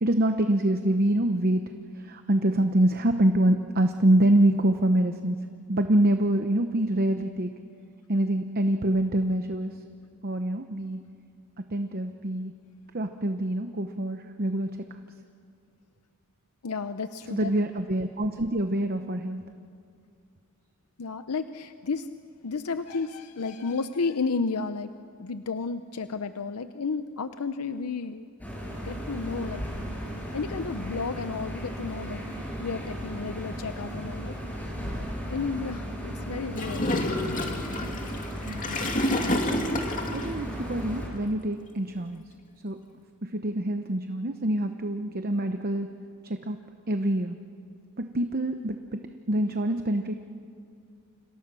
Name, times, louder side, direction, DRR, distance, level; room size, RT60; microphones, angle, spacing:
voice 1, 0.0-1.7 2.0-5.4 5.7-7.5 8.1-9.7 10.2-11.0 11.7-12.5 12.9-14.7 17.3-19.4 38.5-39.0 40.1-42.2 42.6-42.8 43.2-45.9 46.2-46.6 46.9-47.4 48.0-49.0 49.3-50.2, right 1 dB, 45° right, 7 dB, 0.9 m, -25 dB
voice 2, 16.6-17.5 21.0-22.1 22.4-24.9 25.2-28.3 28.8-29.6 30.3-32.2 32.6-34.6 35.3-36.9, left 4 dB, 90° left, 10 dB, 0.7 m, -32 dB
sound 1, 28.4-41.1, equal, 5° left, 6.0 m, -35 dB
Gurgling / Toilet flush, 36.6-40.3, left 1 dB, 35° left, 2.6 m, -28 dB
30.0 x 27.0 x 6.2 m, 2.3 s
head